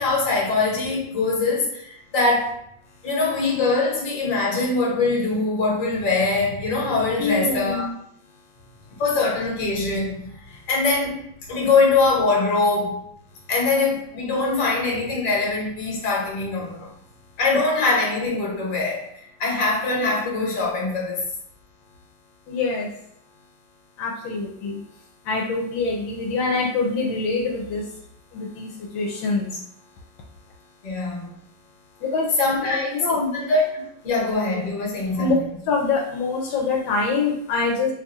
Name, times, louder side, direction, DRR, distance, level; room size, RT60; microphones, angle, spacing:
voice 1, 0.0-2.5 3.0-7.9 9.0-11.2 11.5-13.1 13.5-16.9 17.4-19.0 19.4-21.3 30.8-31.3 32.4-35.4, left 3 dB, 50° left, -3 dB, 1.3 m, -23 dB
voice 2, 7.2-7.9 22.5-22.9 24.0-24.8 25.2-27.9 28.3-29.6 32.0-32.3 32.6-33.3 35.1-35.4 35.7-37.9, left 4 dB, 80° left, -1 dB, 1.3 m, -25 dB
3.2 x 2.3 x 4.0 m, 0.73 s
omnidirectional pair, 2.1 m